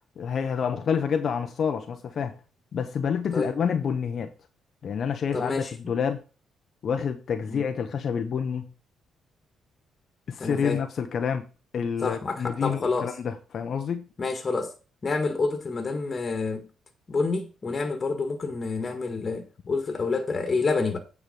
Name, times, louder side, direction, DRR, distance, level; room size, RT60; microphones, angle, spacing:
voice 1, 0.2-2.4 2.7-4.3 4.8-6.2 6.8-8.7 10.3-11.5 11.7-14.1, left 7 dB, 55° left, 0.8 m, -28 dB
voice 2, 5.3-5.7 7.5-7.6 10.4-10.8 12.0-13.1 14.2-14.7 15.0-16.7 17.1-21.0, left 4 dB, 35° left, 1.7 m, -28 dB
9.1 x 4.8 x 5.3 m
cardioid pair, 90°, 0 cm